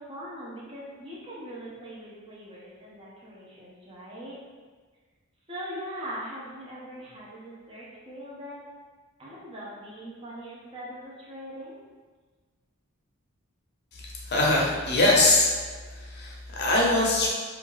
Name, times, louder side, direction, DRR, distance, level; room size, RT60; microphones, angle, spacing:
voice 1, 0.0-4.3 5.5-8.6 9.2-11.8, equal, 25° right, -7 dB, 0.6 m, -41 dB
voice 2, 14.3-15.5 16.0-17.3, left 2 dB, 50° left, -4 dB, 0.6 m, -22 dB
2.7 x 2.3 x 3.0 m, 1.4 s
head